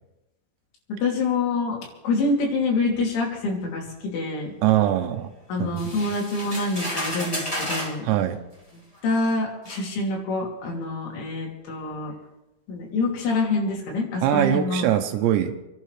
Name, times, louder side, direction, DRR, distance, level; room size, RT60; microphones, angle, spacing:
voice 1, 0.9-1.8 2.0-4.5 5.5-8.1 9.0-12.1 12.7-14.9, left 3 dB, 85° left, -2 dB, 5.4 m, -26 dB
voice 2, 4.6-5.3 5.6-6.1 8.0-8.4 14.2-15.5, right 11 dB, 80° right, 7 dB, 2.9 m, -22 dB
sound 1, 5.8-8.0 8.9-9.0 9.7-9.8, equal, 15° left, 1.4 m, -31 dB
29.0 x 11.5 x 3.3 m, 0.95 s
omnidirectional pair, 5.4 m